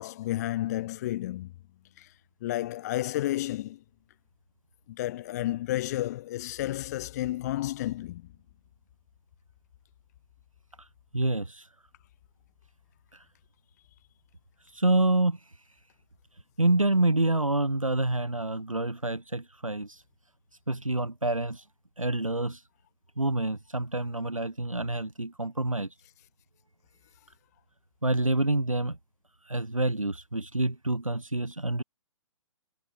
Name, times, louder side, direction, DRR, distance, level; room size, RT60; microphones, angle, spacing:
voice 1, 0.0-1.5 2.0-2.1 2.4-3.8 4.9-8.3, left 15 dB, 30° left, 1.0 m, -31 dB
voice 2, 11.1-11.7 13.1-13.2 14.6-15.5 16.6-20.0 20.7-21.7 22.0-22.6 23.2-25.9 28.0-29.0 29.4-31.8, right 2 dB, 80° right, 4.6 m, -27 dB
figure-of-eight pair, 130°, 17 cm